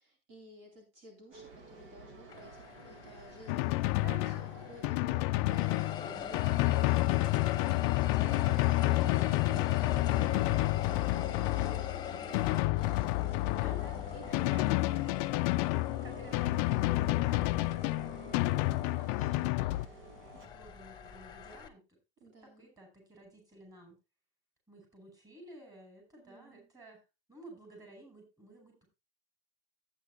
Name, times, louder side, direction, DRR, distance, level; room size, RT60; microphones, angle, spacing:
voice 1, 0.0-15.1 22.2-22.7 26.2-26.7, right 2 dB, 45° right, 2 dB, 3.8 m, -54 dB
sound 1, 1.3-20.5, right 2 dB, 70° right, 6.4 m, -53 dB
sound 2, 2.3-5.1 5.5-21.7, left 7 dB, 15° left, 1.3 m, -43 dB
Drum, 3.5-19.9, left 20 dB, 45° left, 0.4 m, -30 dB
voice 2, 3.9-5.1 13.5-15.2 15.7-22.0 22.4-24.0 24.7-27.0 27.3-28.9, right 1 dB, 10° right, 3 dB, 5.4 m, -54 dB
14.5 x 9.0 x 2.3 m, 0.26 s
supercardioid pair, 160°, 29 cm